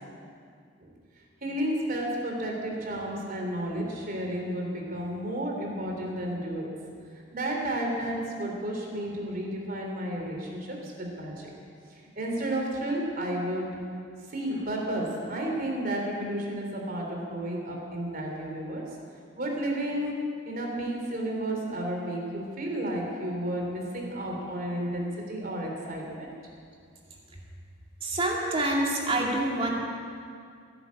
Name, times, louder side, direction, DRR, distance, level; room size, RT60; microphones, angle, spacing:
voice 1, 1.4-11.5 11.9-13.8 14.3-18.8 19.3-26.3, right 1 dB, 50° right, 0 dB, 3.3 m, -32 dB
voice 2, 28.0-29.7, right 1 dB, 30° right, -2 dB, 2.4 m, -26 dB
17.0 x 10.0 x 8.4 m, 2.3 s
head